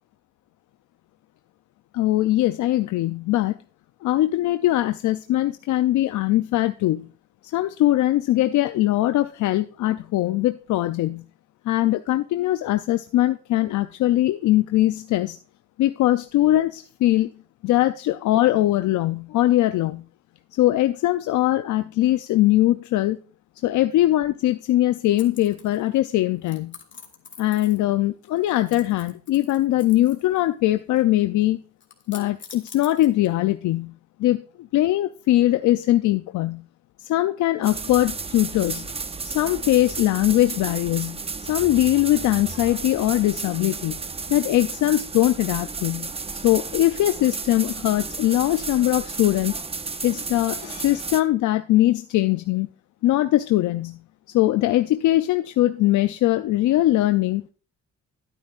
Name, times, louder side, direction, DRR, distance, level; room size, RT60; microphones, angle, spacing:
voice 1, 1.9-3.6 4.0-7.1 7.5-11.2 11.7-15.4 15.8-17.3 17.6-20.0 20.5-23.2 23.6-26.7 27.4-31.6 32.1-33.9 34.2-36.6 37.0-38.9 39.2-44.0 44.3-46.1 46.4-49.6 50.0-52.7 53.0-54.0 54.3-57.4, left 15 dB, 80° left, 10 dB, 0.5 m, -21 dB
sound 1, 25.2-26.0 26.4-28.0 28.2-30.4 30.6-31.2 31.8-33.5, left 6 dB, 40° left, 1.9 m, -45 dB
sound 2, 37.6-51.2, right 4 dB, 20° right, 0.6 m, -33 dB
11.5 x 9.0 x 2.5 m, 0.36 s
cardioid pair, 90°, 30 cm